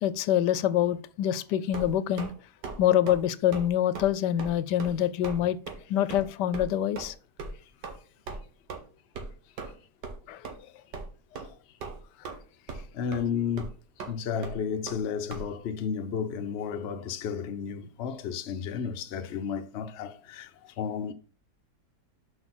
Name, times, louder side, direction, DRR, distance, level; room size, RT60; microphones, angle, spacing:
voice 1, 0.0-2.3 2.8-5.6 5.9-7.1 10.3-10.4, left 11 dB, 80° left, 1.2 m, -25 dB
sound 1, 1.7-2.3 2.6-2.8 3.1-3.2 3.5-3.7 4.0-4.1 4.4-4.5 4.8-4.9 5.2-5.4 5.7-5.8 6.1-6.2 6.5-6.6 7.0-7.1 7.4-7.5 7.8-8.0 8.3-8.4 8.7-8.8 9.2-9.3 9.6-9.7 10.0-10.2 10.4-10.5 10.9-11.1 11.4-11.5 11.8-12.4 12.7-12.9 13.1-13.2 13.6-13.7 14.0-14.1 14.4-14.6 14.9-15.0 15.3-15.4, right 4 dB, 85° right, 1.9 m, -38 dB
voice 2, 12.9-13.7 14.1-21.1, left 7 dB, 55° left, 0.8 m, -32 dB
6.2 x 5.1 x 5.9 m
omnidirectional pair, 1.8 m